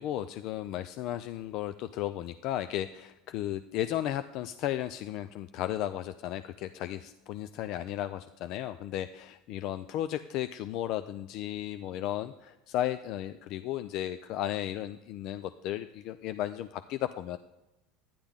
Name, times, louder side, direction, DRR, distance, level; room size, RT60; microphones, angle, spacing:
voice 1, 0.0-17.4, left 12 dB, 50° left, 11 dB, 0.4 m, -34 dB
11.5 x 10.0 x 3.6 m, 0.97 s
cardioid pair, 150°, 0 cm